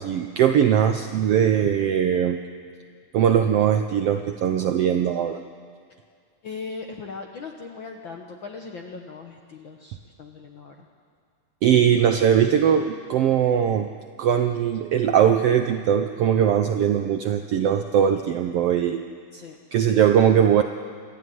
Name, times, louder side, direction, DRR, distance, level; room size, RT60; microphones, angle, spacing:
voice 1, 0.0-2.4 3.1-5.4 11.6-13.9 14.2-19.0 19.7-20.6, right 9 dB, 75° right, 6 dB, 1.4 m, -20 dB
voice 2, 6.4-10.9 19.3-19.6, left 4 dB, 60° left, 2 dB, 1.3 m, -39 dB
27.0 x 12.5 x 9.4 m, 2.1 s
omnidirectional pair, 3.6 m